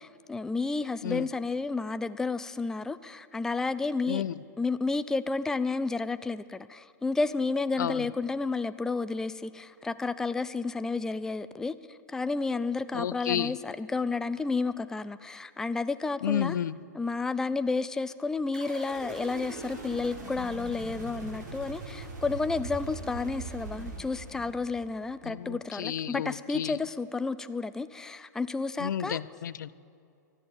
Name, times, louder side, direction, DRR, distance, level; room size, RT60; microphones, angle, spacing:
voice 1, 0.0-4.2 4.6-16.6 16.9-29.2, left 3 dB, 5° left, 13 dB, 0.4 m, -31 dB
voice 2, 12.9-13.6 16.2-16.8 25.2-26.8 28.8-29.7, left 9 dB, 80° left, 18 dB, 0.5 m, -31 dB
sound 1, 18.5-25.0, right 3 dB, 70° right, 4.0 m, -41 dB
13.0 x 11.5 x 8.6 m, 2.6 s
hypercardioid pair, 125°, 10 cm